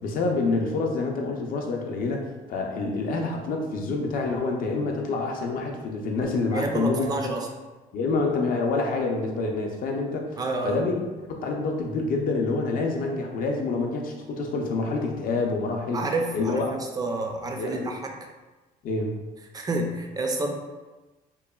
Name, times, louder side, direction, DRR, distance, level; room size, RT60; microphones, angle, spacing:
voice 1, 0.0-7.3 7.9-10.3 10.6-11.0 11.3-16.0 16.3-16.7 17.6-18.0 18.8-19.2, left 3 dB, 55° left, 1 dB, 0.5 m, -27 dB
voice 2, 6.5-7.5 10.4-10.8 15.9-18.2 19.5-20.5, right 2 dB, 25° right, 2 dB, 0.3 m, -29 dB
3.0 x 2.1 x 2.3 m, 1.2 s
cardioid pair, 110°, 17 cm